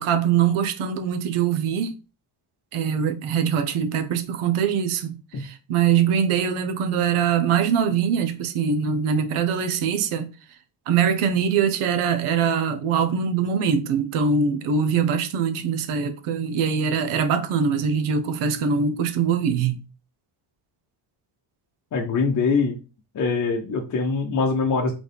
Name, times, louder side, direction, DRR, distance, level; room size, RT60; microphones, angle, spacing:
voice 1, 0.0-2.0 2.7-10.3 10.9-19.8, right 7 dB, 85° right, 0.8 m, -23 dB
voice 2, 21.9-22.8 23.1-24.9, left 4 dB, 35° left, 0.7 m, -23 dB
4.0 x 3.2 x 3.3 m
cardioid pair, 130°, 49 cm